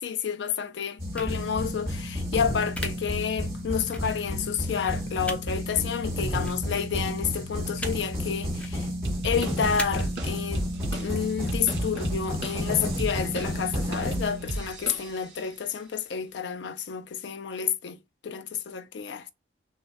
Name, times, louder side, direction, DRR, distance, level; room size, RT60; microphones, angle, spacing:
voice 1, 0.0-8.9 9.2-10.7 10.9-18.0 18.2-19.3, left 7 dB, 70° left, 0.4 m, -30 dB
sound 1, 1.0-14.9, equal, 15° right, 2.4 m, -32 dB
sound 2, 1.1-1.3 2.7-2.9 3.9-4.0 5.2-5.4 6.4-6.6 7.7-7.9 8.5-8.7 9.8-9.9, left 1 dB, 5° left, 0.5 m, -34 dB
sound 3, 9.0-15.5, right 1 dB, 75° right, 1.5 m, -35 dB
3.6 x 3.0 x 3.3 m
head